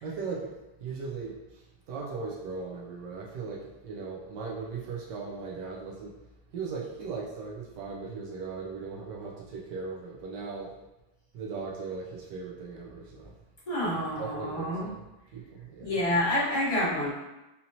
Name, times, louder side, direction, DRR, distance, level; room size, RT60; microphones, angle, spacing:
voice 1, 0.0-6.1 6.5-10.7 11.3-13.3 14.2-15.0 15.3-16.0, right 4 dB, 70° right, -3 dB, 1.1 m, -38 dB
voice 2, 13.7-14.9 15.8-17.1, left 1 dB, 30° left, -9 dB, 0.7 m, -28 dB
4.2 x 2.7 x 2.7 m, 0.97 s
omnidirectional pair, 2.2 m